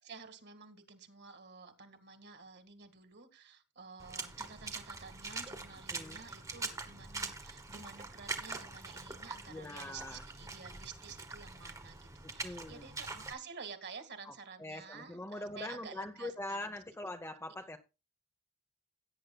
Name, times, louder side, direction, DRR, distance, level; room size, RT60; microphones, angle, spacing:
voice 1, 0.0-16.8, right 5 dB, 50° right, 2.0 m, -51 dB
Water / Splash splatter, 4.0-13.3, right 3 dB, 15° right, 1.4 m, -44 dB
voice 2, 9.5-10.2 12.2-12.9 14.2-14.3 14.6-17.8, left 1 dB, 10° left, 0.8 m, -43 dB
17.0 x 9.5 x 2.3 m
head